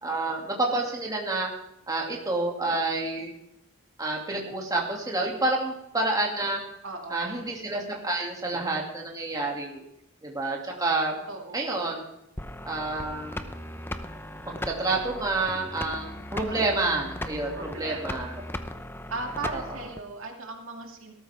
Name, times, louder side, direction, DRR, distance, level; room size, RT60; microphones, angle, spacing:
voice 1, 0.0-1.5 1.9-3.3 4.0-6.6 7.1-9.8 10.2-11.2 11.5-12.0 12.6-13.5 14.5-18.3 19.5-19.6, right 2 dB, 20° right, -1 dB, 2.4 m, -29 dB
voice 2, 6.8-7.5 11.3-11.9 16.5-17.0 17.5-18.3 18.6-18.7 19.1-21.1, right 3 dB, 70° right, 2 dB, 2.5 m, -38 dB
sound 1, 12.4-20.0, left 1 dB, 10° left, 0.8 m, -37 dB
18.0 x 13.5 x 3.5 m, 0.85 s
head